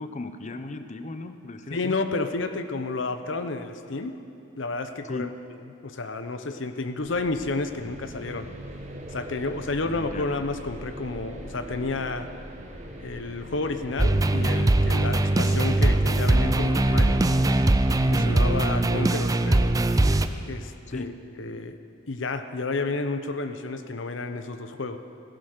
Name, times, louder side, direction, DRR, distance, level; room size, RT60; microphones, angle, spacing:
voice 1, 0.0-1.9 5.1-5.3 9.8-10.3 20.9-21.1, left 2 dB, 40° left, 9 dB, 0.7 m, -36 dB
voice 2, 1.7-4.2 4.6-5.3 5.8-8.5 9.1-12.3 13.0-17.3 18.1-19.7 20.5-21.1 21.4-21.8 22.1-25.0, left 3 dB, 75° left, 9 dB, 0.9 m, -31 dB
sound 1, 7.0-18.9, equal, 40° right, 1.4 m, -41 dB
sound 2, 14.0-20.3, right 2 dB, 20° right, 0.4 m, -21 dB
16.5 x 11.0 x 6.6 m, 2.6 s
head